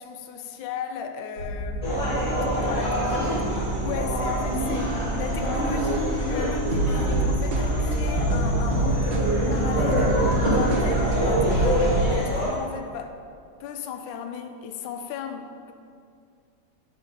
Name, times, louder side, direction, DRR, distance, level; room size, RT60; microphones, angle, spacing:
voice 1, 0.0-3.5 3.8-13.2 13.6-15.7, left 7 dB, 75° left, 6 dB, 1.3 m, -35 dB
sound 1, 1.4-12.1, right 2 dB, 70° right, 1.7 m, -26 dB
sound 2, 1.8-12.5, equal, 25° left, 1.6 m, -27 dB
7.3 x 4.4 x 5.5 m, 2.3 s
omnidirectional pair, 2.2 m